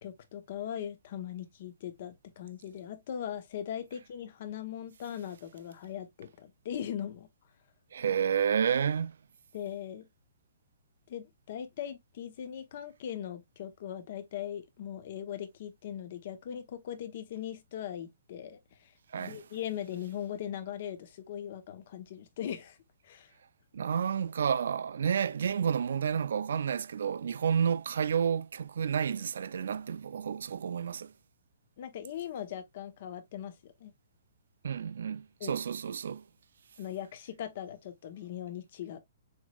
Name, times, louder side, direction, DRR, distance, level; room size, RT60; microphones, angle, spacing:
voice 1, 0.0-7.3 9.5-10.0 11.1-22.8 23.0-23.3 31.8-33.9 35.4-35.6 36.8-39.0, left 10 dB, 35° left, 0.9 m, -40 dB
voice 2, 7.9-9.2 19.1-19.4 23.7-31.1 34.6-36.2, right 7 dB, 60° right, 0.4 m, -30 dB
7.1 x 3.2 x 2.3 m
hypercardioid pair, 180°, 0 cm